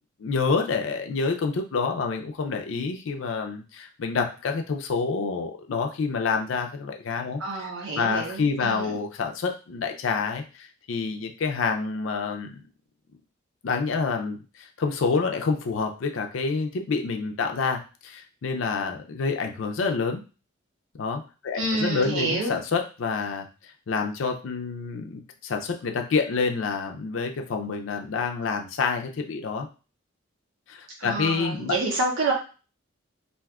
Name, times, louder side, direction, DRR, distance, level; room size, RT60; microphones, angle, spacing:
voice 1, 0.2-12.6 13.6-20.2 20.9-29.7 30.7-31.7, left 4 dB, 75° left, 3 dB, 0.4 m, -28 dB
voice 2, 7.4-8.9 21.5-22.5 31.0-32.3, right 2 dB, 80° right, -1 dB, 0.7 m, -28 dB
2.5 x 2.3 x 3.4 m, 0.34 s
head